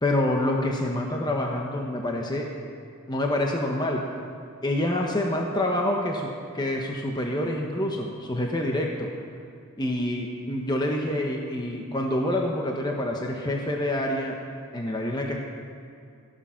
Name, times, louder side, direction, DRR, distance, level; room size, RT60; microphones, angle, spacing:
voice 1, 0.0-2.5 3.1-4.0 4.6-6.3 6.5-9.1 9.8-14.4 14.7-15.4, left 1 dB, 20° left, 1 dB, 1.0 m, -27 dB
14.5 x 12.0 x 5.8 m, 2.4 s
head